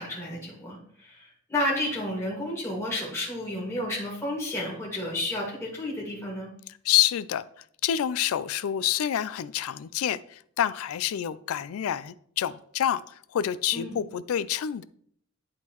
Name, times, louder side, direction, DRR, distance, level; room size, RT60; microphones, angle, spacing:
voice 1, 0.0-6.5 13.7-14.0, left 1 dB, 15° left, -5 dB, 1.9 m, -31 dB
voice 2, 6.8-7.5 7.8-14.8, left 10 dB, 90° left, 17 dB, 0.3 m, -27 dB
11.0 x 3.8 x 3.0 m, 0.63 s
head